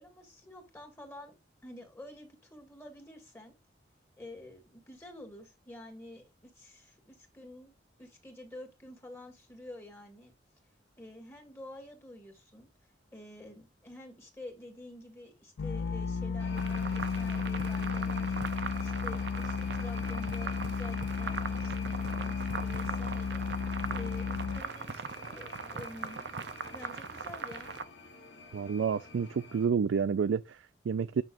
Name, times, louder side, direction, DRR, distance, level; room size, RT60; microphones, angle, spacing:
voice 1, 0.0-1.3 1.6-3.5 4.2-7.7 8.0-10.3 11.0-12.7 13.1-18.3 18.8-23.4 23.9-26.3 26.7-27.7, left 1 dB, 15° left, 2.5 m, -49 dB
sound 1, 15.6-24.6, left 5 dB, 85° left, 0.4 m, -33 dB
sound 2, 16.4-29.7, left 3 dB, 65° left, 1.8 m, -49 dB
sound 3, 16.6-27.8, right 5 dB, 60° right, 0.8 m, -40 dB
voice 2, 28.5-31.2, right 6 dB, 85° right, 0.4 m, -30 dB
9.1 x 6.2 x 2.6 m
head